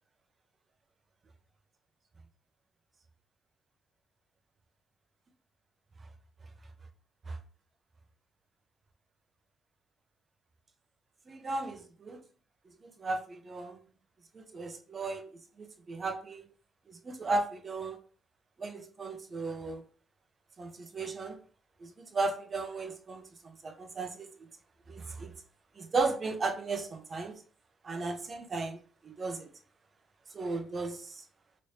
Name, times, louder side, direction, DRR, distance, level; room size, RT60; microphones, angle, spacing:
voice 1, 11.3-12.2 13.0-13.8 14.3-15.3 15.6-16.5 16.9-18.0 18.6-19.8 20.6-21.4 21.8-23.3 23.6-24.5 24.9-25.3 25.8-27.4 27.8-28.8 29.0-29.5 30.3-31.1, right 3 dB, 40° right, 0.7 m, -35 dB
3.2 x 3.1 x 2.8 m
cardioid pair, 90°, 0 cm